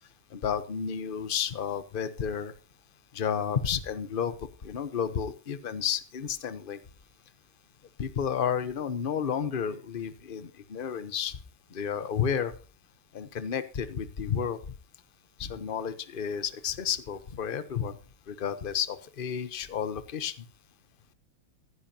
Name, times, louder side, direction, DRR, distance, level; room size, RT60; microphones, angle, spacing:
voice 1, 0.3-2.5 3.1-4.3 4.6-6.8 8.0-11.4 11.7-12.5 13.1-14.6 15.4-18.0 18.3-20.5, left 7 dB, 45° left, 12 dB, 0.6 m, -31 dB
15.5 x 14.5 x 2.9 m, 0.36 s
omnidirectional pair, 2.4 m